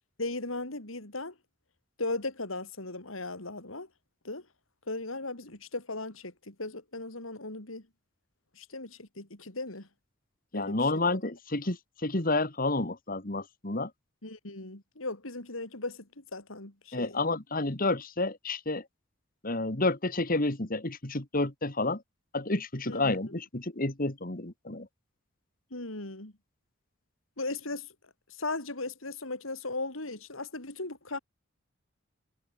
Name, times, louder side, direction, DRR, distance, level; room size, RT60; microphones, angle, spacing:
voice 1, 0.2-1.3 2.0-3.9 4.2-4.5 4.9-7.8 8.5-9.9 10.5-11.2 14.2-17.2 22.9-23.1 25.7-26.3 27.4-27.9 28.3-31.2, left 2 dB, 85° left, 4.6 m, -37 dB
voice 2, 10.5-13.9 16.9-18.8 19.4-22.0 22.3-24.9, left 2 dB, 45° left, 2.2 m, -30 dB
head